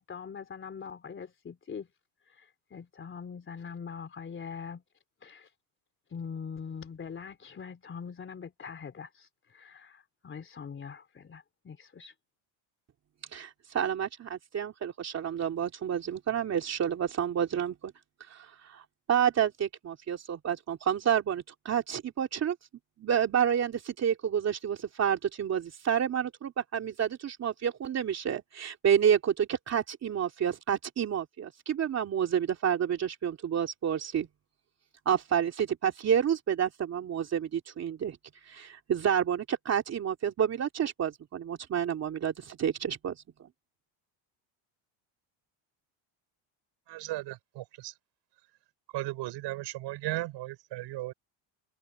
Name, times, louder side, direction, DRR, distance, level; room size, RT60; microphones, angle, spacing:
voice 1, 0.0-1.9 2.3-4.8 5.2-5.5 6.1-12.1, left 6 dB, 25° left, 3.3 m, -43 dB
voice 2, 13.3-17.9 18.2-22.6 23.0-34.3 35.0-43.5, right 8 dB, 35° right, 3.0 m, -29 dB
voice 3, 46.9-47.9 48.9-51.1, right 17 dB, 60° right, 5.1 m, -36 dB
cardioid pair, 140°, 47 cm